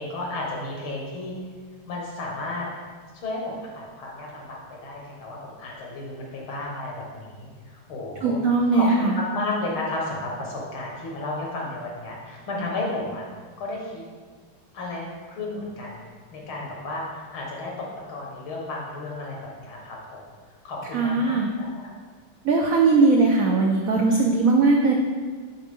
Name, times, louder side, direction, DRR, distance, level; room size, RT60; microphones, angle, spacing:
voice 1, 0.0-1.3 1.9-2.7 3.1-8.4 8.7-13.3 13.6-14.0 14.7-17.7 18.1-20.2 20.6-21.9, left 2 dB, 85° left, -2 dB, 2.3 m, -33 dB
voice 2, 8.2-9.2 20.9-21.5 22.4-24.9, right 3 dB, 85° right, 0 dB, 0.7 m, -19 dB
9.3 x 3.9 x 3.7 m, 1.5 s
omnidirectional pair, 2.2 m